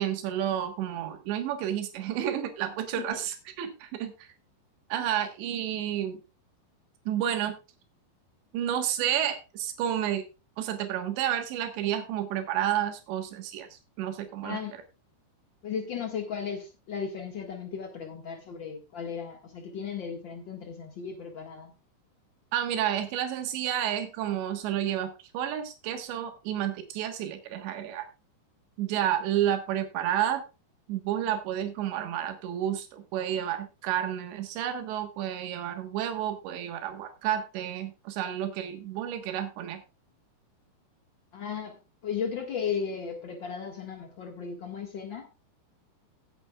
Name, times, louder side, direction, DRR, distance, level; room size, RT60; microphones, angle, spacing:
voice 1, 0.0-4.3 4.9-6.2 7.1-7.6 8.5-10.2 10.6-14.6 22.5-28.1 28.8-30.4 30.9-39.8, right 10 dB, 85° right, 6 dB, 3.6 m, -30 dB
voice 2, 14.4-14.8 15.6-21.7 41.3-45.3, left 6 dB, 65° left, 2 dB, 1.1 m, -35 dB
17.5 x 9.0 x 2.3 m, 0.28 s
omnidirectional pair, 4.9 m